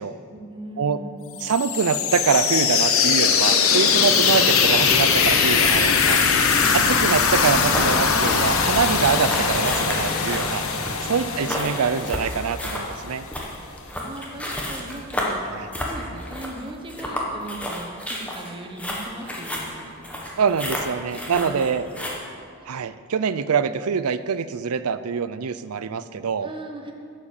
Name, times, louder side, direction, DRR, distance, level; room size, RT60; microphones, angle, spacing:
voice 1, 0.3-1.4 11.3-11.5 13.9-15.4 15.8-20.4 21.1-21.6 22.1-22.5 26.4-26.9, right 1 dB, 20° right, 2 dB, 1.0 m, -39 dB
sound 1, 1.4-13.1, left 6 dB, 70° left, 1.0 m, -21 dB
voice 2, 1.4-6.2 6.5-13.3 15.5-15.7 20.4-21.8 22.7-26.5, right 6 dB, 85° right, 14 dB, 0.5 m, -25 dB
sound 2, 7.7-22.2, left 1 dB, 5° left, 1.3 m, -31 dB
11.0 x 7.4 x 7.3 m, 2.3 s
head